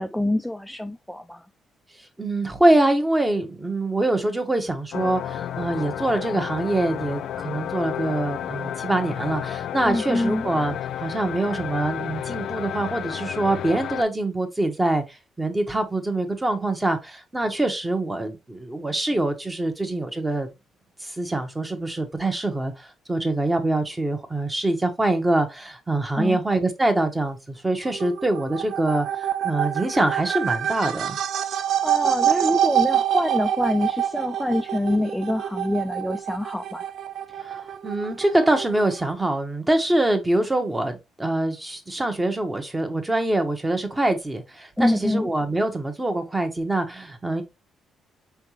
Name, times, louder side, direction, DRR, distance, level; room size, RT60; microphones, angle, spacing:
voice 1, 0.0-1.5 9.8-10.5 26.1-26.4 31.8-36.8 44.8-45.3, left 1 dB, 5° left, 0.4 m, -25 dB
voice 2, 2.2-20.5 21.0-31.2 37.4-47.4, right 2 dB, 15° right, 1.1 m, -24 dB
sound 1, 4.9-14.0, left 10 dB, 70° left, 0.3 m, -31 dB
sound 2, 27.8-39.1, right 10 dB, 65° right, 0.4 m, -26 dB
4.7 x 3.4 x 2.9 m
cardioid pair, 90°, 0 cm